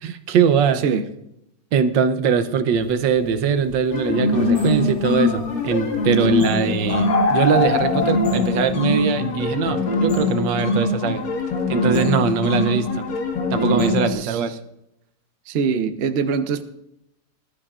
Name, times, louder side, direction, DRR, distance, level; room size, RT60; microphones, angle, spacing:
voice 1, 0.0-0.8 1.7-11.2 11.7-13.0 13.5-14.6, right 6 dB, 80° right, 1.5 m, -21 dB
sound 1, 3.3-3.4 3.7-4.0 4.9-5.0 5.5-8.7, left 3 dB, 85° left, 0.3 m, -24 dB
sound 2, 3.9-14.1, left 2 dB, 55° left, 1.9 m, -22 dB
voice 2, 14.1-14.6 15.5-16.6, right 6 dB, 55° right, 0.7 m, -23 dB
20.0 x 12.0 x 2.5 m
omnidirectional pair, 2.0 m